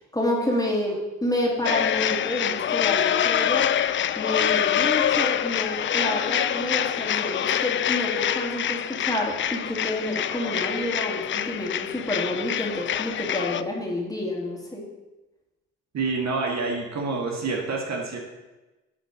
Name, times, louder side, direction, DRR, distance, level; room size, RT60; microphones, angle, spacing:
voice 1, 0.1-3.6 4.2-14.8, left 1 dB, 10° left, -2 dB, 2.7 m, -29 dB
sound 1, 1.7-13.6, left 10 dB, 35° left, 0.4 m, -25 dB
voice 2, 15.9-18.2, right 4 dB, 55° right, 0 dB, 1.8 m, -27 dB
9.6 x 4.2 x 5.4 m, 1.1 s
supercardioid pair, 55°, 33 cm